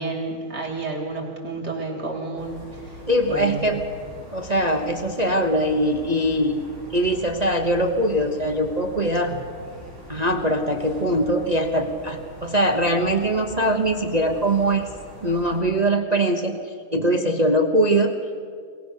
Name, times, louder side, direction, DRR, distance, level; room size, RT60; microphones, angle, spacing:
voice 1, 0.0-3.0 3.3-3.7, right 3 dB, 50° right, 0 dB, 4.2 m, -31 dB
sound 1, 2.4-15.6, left 1 dB, 40° left, 8.6 m, -42 dB
voice 2, 3.1-3.8 4.3-6.6 6.9-9.4 10.1-14.9 15.2-16.6 16.9-18.1, right 1 dB, 30° right, 5 dB, 0.7 m, -22 dB
22.0 x 20.5 x 6.6 m, 2.2 s
omnidirectional pair, 2.3 m